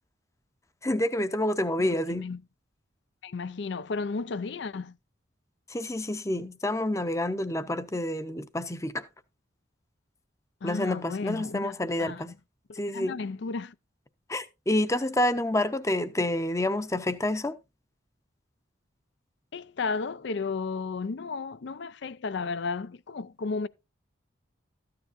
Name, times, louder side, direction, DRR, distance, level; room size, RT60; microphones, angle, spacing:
voice 1, 0.8-2.2 5.7-9.0 10.6-12.3 12.8-13.2 14.3-17.5, left 1 dB, 15° left, 0.7 m, -28 dB
voice 2, 1.8-2.4 3.2-4.9 10.6-11.7 12.0-12.3 12.7-13.7 19.5-23.7, left 4 dB, 60° left, 0.5 m, -33 dB
13.5 x 9.6 x 2.6 m
head